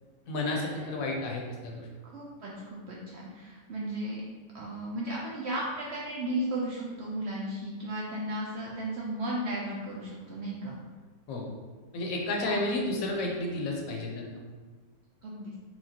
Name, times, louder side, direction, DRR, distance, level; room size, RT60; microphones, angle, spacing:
voice 1, 0.3-1.9 11.3-11.5 11.9-14.3, left 2 dB, 75° left, 0 dB, 1.0 m, -31 dB
voice 2, 2.0-2.5 2.9-4.2 4.5-10.8 12.4-12.6 15.2-15.5, right 1 dB, 65° right, -4 dB, 0.7 m, -35 dB
4.3 x 2.3 x 2.8 m, 1.3 s
omnidirectional pair, 1.6 m